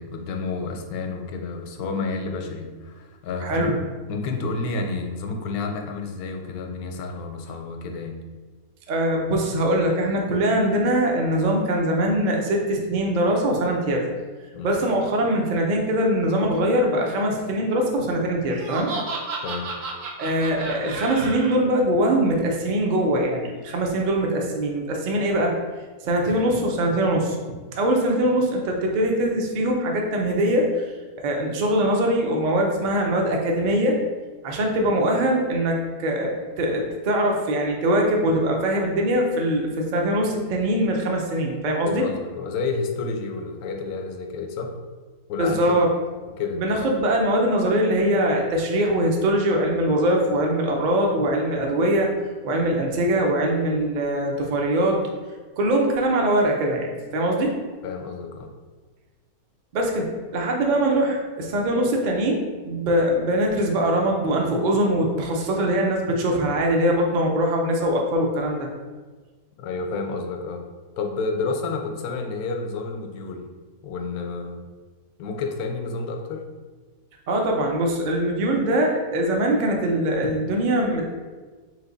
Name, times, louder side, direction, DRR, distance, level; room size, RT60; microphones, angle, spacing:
voice 1, 0.0-3.7 4.1-8.2 14.5-14.7 19.4-19.7 41.8-44.8 45.3-45.6 46.4-46.6 57.8-58.5 69.6-70.6 71.0-73.5 73.8-74.7 75.2-76.4, left 4 dB, 80° left, 4 dB, 1.1 m, -30 dB
voice 2, 3.4-3.7 8.9-14.0 14.6-18.9 20.2-25.5 26.0-27.4 27.7-30.9 31.2-34.0 34.4-42.0 45.4-45.9 46.5-52.1 52.4-55.0 55.6-57.5 59.7-68.7 77.3-81.1, right 1 dB, 65° right, 0 dB, 0.4 m, -22 dB
Laughter, 18.5-21.5, right 3 dB, 85° right, 1.1 m, -32 dB
3.3 x 2.8 x 3.8 m, 1.4 s
omnidirectional pair, 1.6 m